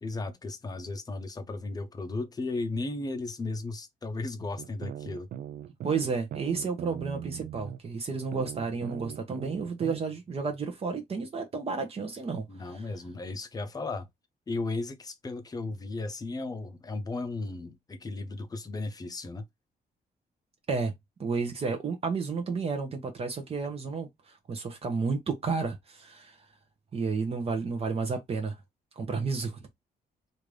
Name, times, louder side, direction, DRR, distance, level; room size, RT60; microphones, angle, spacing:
voice 1, 0.0-5.3 12.5-14.1 14.5-19.4, left 3 dB, 25° left, 0.6 m, -35 dB
sound 1, 4.6-7.8 8.3-10.0, right 10 dB, 65° right, 0.4 m, -39 dB
voice 2, 5.8-12.4 20.7-20.9 21.2-24.1 24.5-26.4 26.9-28.5 29.0-29.6, right 4 dB, 40° right, 0.8 m, -31 dB
3.3 x 2.6 x 3.2 m
cardioid pair, 125°, 16 cm